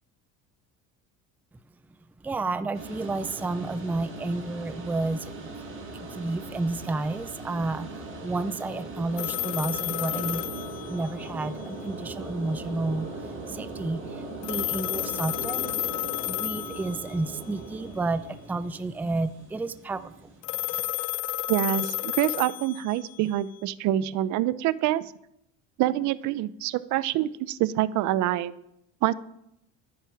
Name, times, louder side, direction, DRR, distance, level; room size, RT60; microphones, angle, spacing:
voice 1, 2.2-5.5 5.9-10.4 10.9-15.9 16.3-20.3, right 2 dB, 5° right, 13 dB, 0.4 m, -31 dB
sound 1, 2.7-20.4, right 2 dB, 40° right, 5.1 m, -39 dB
sound 2, 9.2-11.5 14.4-17.3 20.4-23.4, left 18 dB, 75° left, 0.8 m, -32 dB
voice 2, 21.5-25.1 25.8-28.5 29.0-29.1, right 13 dB, 65° right, 17 dB, 0.7 m, -26 dB
12.5 x 9.8 x 5.9 m, 0.77 s
cardioid pair, 130°, 32 cm